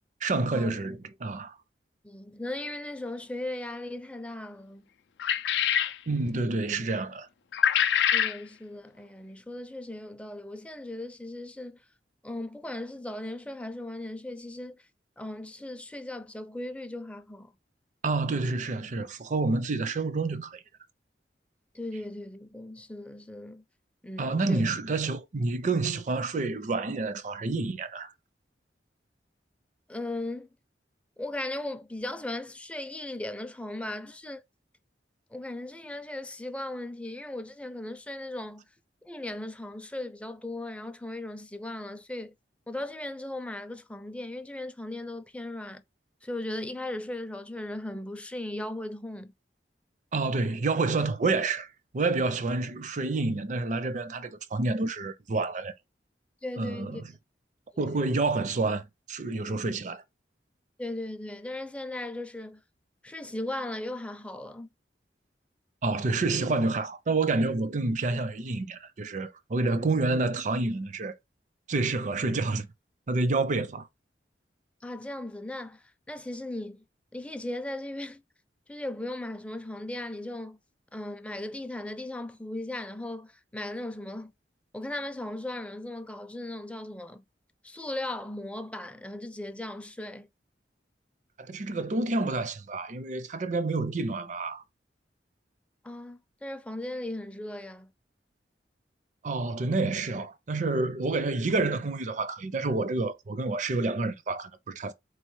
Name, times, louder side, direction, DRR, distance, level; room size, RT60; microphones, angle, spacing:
voice 1, 0.2-1.6 6.1-7.3 18.0-20.6 24.2-28.1 50.1-51.7 51.9-55.7 56.6-57.0 57.8-60.0 65.8-71.2 71.7-72.7 73.1-73.9 91.4-94.6 99.2-104.9, right 3 dB, 45° right, 0.5 m, -28 dB
voice 2, 2.0-4.8 8.1-11.8 12.2-14.9 15.2-17.5 21.7-23.6 24.0-24.6 29.9-30.5 31.2-34.4 35.3-38.7 39.0-42.3 42.7-45.8 46.2-49.3 56.4-57.0 57.7-58.0 60.8-62.6 63.0-64.7 74.8-76.8 77.1-78.2 78.7-80.6 80.9-84.3 84.7-87.2 87.6-90.3 95.8-97.9, left 1 dB, 5° left, 0.4 m, -37 dB
sound 1, 5.2-6.0 7.5-8.4, left 9 dB, 75° left, 0.4 m, -24 dB
4.0 x 3.1 x 3.1 m
head